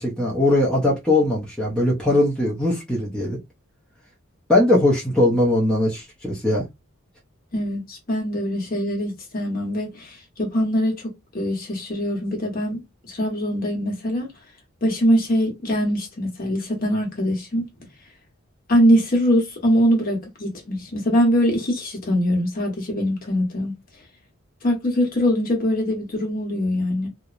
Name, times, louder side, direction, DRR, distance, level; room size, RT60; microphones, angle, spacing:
voice 1, 0.0-3.4 4.5-6.6, left 1 dB, 5° left, 0.6 m, -20 dB
voice 2, 7.5-11.1 11.3-14.3 14.8-17.7 18.7-23.7 24.6-27.1, equal, 40° left, 0.9 m, -22 dB
2.9 x 2.1 x 2.4 m
head